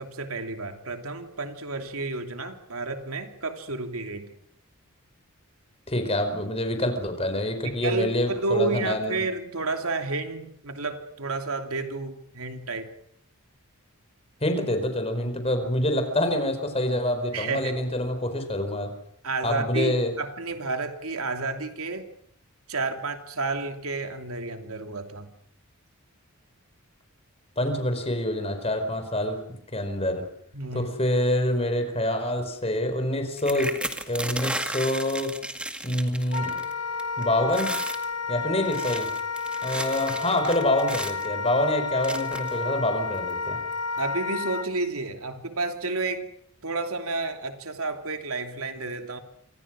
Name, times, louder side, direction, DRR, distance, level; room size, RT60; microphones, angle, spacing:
voice 1, 0.0-4.3 7.6-12.9 17.3-17.7 19.2-22.1 22.7-25.3 30.5-30.9 44.0-46.3 46.6-49.2, right 3 dB, 75° right, 6 dB, 2.9 m, -31 dB
voice 2, 5.9-9.2 14.4-18.9 19.4-20.1 27.6-29.4 29.7-30.2 30.7-33.8 34.1-35.3 35.8-36.7 37.2-37.7 38.3-39.1 39.6-43.6, left 1 dB, 25° left, 7 dB, 4.7 m, -26 dB
sound 1, 33.4-36.7 37.0-37.2 37.5-38.0 38.6-41.3 42.0-42.6 43.3-43.4 43.7-44.0, right 1 dB, 5° right, 2.0 m, -34 dB
Wind instrument woodwind instrument, 36.3-44.7, left 5 dB, 85° left, 1.9 m, -31 dB
28.0 x 25.5 x 6.3 m, 0.68 s
head